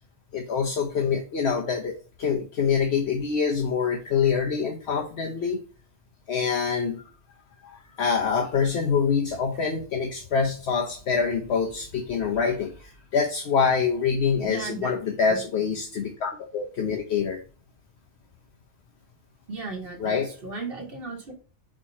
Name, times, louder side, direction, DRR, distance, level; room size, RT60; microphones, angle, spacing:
voice 1, 0.3-5.6 6.3-7.0 7.6-17.4 20.0-20.3, left 6 dB, 65° left, 2 dB, 1.1 m, -25 dB
voice 2, 14.4-15.0 15.3-15.4 19.5-21.3, right 3 dB, 50° right, 1 dB, 1.9 m, -35 dB
5.1 x 4.2 x 4.7 m, 0.37 s
omnidirectional pair, 1.2 m